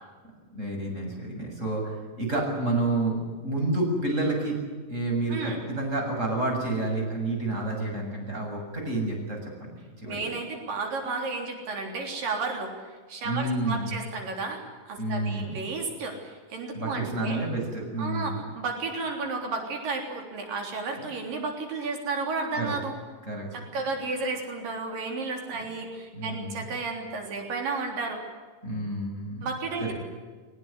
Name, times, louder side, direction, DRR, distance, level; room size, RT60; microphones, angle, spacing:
voice 1, 0.5-4.6 4.9-10.2 13.2-13.9 15.0-15.6 16.7-18.3 22.6-22.7 23.3-23.5 26.1-26.7 28.6-29.5 29.8-29.9, right 2 dB, 20° right, 1 dB, 7.6 m, -29 dB
voice 2, 10.1-12.7 13.1-14.6 14.9-17.4 18.0-22.9 23.5-28.2 29.4-29.9, right 3 dB, 90° right, 2 dB, 5.3 m, -32 dB
22.5 x 20.0 x 9.8 m, 1.4 s
omnidirectional pair, 3.8 m